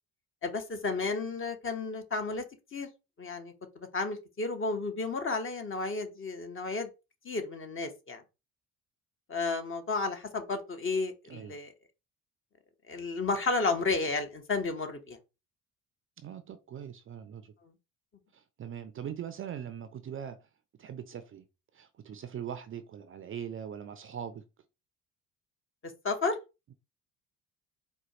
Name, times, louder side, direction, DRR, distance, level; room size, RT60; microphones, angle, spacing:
voice 1, 0.4-2.4 2.7-2.9 3.2-6.9 7.2-8.2 9.3-11.7 12.9-15.2 26.0-26.4, left 3 dB, 35° left, 1.0 m, -32 dB
voice 2, 11.3-11.6 16.2-17.5 18.3-20.4 20.8-21.4 21.7-24.4, right 8 dB, 35° right, 0.5 m, -41 dB
4.2 x 2.2 x 2.9 m
hypercardioid pair, 55°, 37 cm